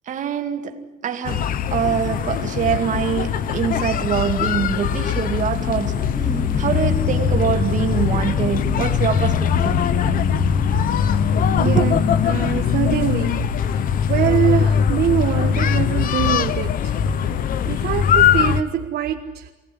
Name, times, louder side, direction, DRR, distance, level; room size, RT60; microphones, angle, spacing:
voice 1, 0.1-6.1 6.6-9.9 11.6-11.9, right 8 dB, 45° right, 2.4 m, -24 dB
sound 1, 1.2-18.6, left 8 dB, 55° left, 1.0 m, -21 dB
sound 2, 5.7-14.0, right 1 dB, 5° left, 3.7 m, -30 dB
voice 2, 11.6-12.0 12.2-17.0 17.3-19.5, right 11 dB, 65° right, 1.5 m, -24 dB
25.0 x 18.5 x 10.0 m
cardioid pair, 160°, 17 cm